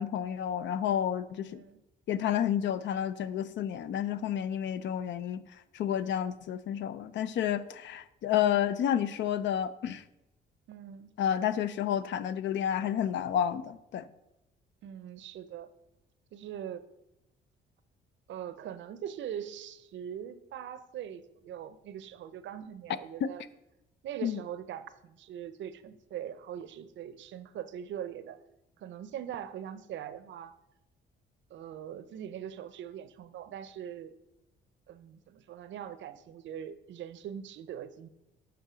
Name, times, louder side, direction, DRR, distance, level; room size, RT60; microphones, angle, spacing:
voice 1, 0.0-1.6 2.1-5.4 5.7-10.0 11.2-14.0 23.2-23.3 24.2-24.4, left 9 dB, 65° left, 0.4 m, -30 dB
voice 2, 10.7-11.2 14.8-15.7 16.3-16.9 18.3-23.4 24.0-28.4 28.8-30.5 31.5-34.1 34.9-38.1, right 9 dB, 70° right, 0.5 m, -42 dB
8.2 x 3.8 x 4.9 m
cardioid pair, 90°, 20 cm